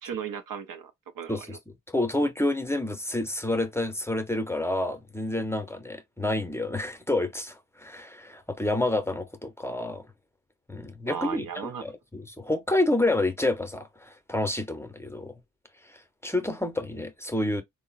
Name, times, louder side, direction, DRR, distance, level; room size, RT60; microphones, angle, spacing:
voice 1, 0.0-1.6 11.1-11.8, right 7 dB, 80° right, 0.6 m, -36 dB
voice 2, 1.3-10.1 10.7-11.4 11.8-15.3 15.8-17.6, left 1 dB, 10° left, 0.7 m, -29 dB
3.6 x 2.0 x 2.3 m
cardioid pair, 50°, 32 cm